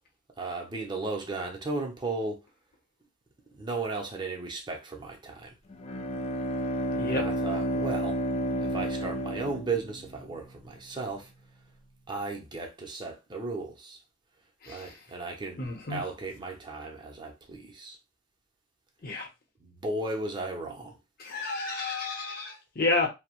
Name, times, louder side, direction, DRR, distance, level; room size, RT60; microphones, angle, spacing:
voice 1, 0.4-2.4 3.6-5.6 7.1-8.2 8.6-11.3 12.1-14.0 14.7-18.0 19.6-20.9, right 3 dB, 25° right, 0.6 m, -35 dB
Bowed string instrument, 5.7-10.4, right 1 dB, 30° left, 0.4 m, -31 dB
voice 2, 14.6-14.9 15.6-16.0 19.0-19.3 21.2-23.1, left 3 dB, 50° left, 0.9 m, -30 dB
2.8 x 2.0 x 2.9 m
head